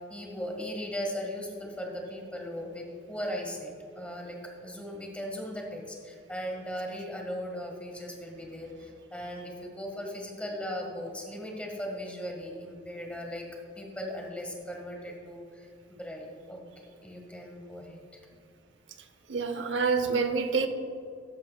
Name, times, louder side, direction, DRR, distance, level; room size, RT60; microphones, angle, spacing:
voice 1, 0.1-13.5 13.7-16.7 17.0-18.2, equal, 5° left, 0 dB, 1.5 m, -38 dB
voice 2, 19.3-20.7, right 4 dB, 85° right, 7 dB, 0.7 m, -27 dB
13.5 x 10.5 x 2.3 m, 2.4 s
head